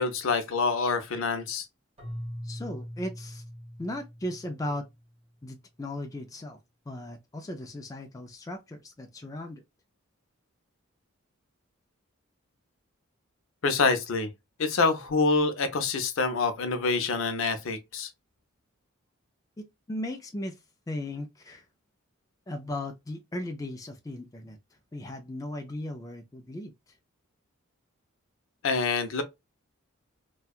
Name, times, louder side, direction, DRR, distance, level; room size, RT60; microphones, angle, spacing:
voice 1, 0.0-1.7 13.6-14.3 14.6-18.1 28.6-29.2, left 4 dB, 70° left, 0.6 m, -26 dB
Keyboard (musical), 2.0-5.1, equal, 30° right, 1.1 m, -41 dB
voice 2, 2.4-3.4 3.8-4.9 5.4-6.6 6.9-9.6 19.6-20.6 20.9-21.7 22.5-24.6 24.9-27.0, left 1 dB, 15° left, 0.3 m, -37 dB
2.7 x 2.2 x 2.3 m
head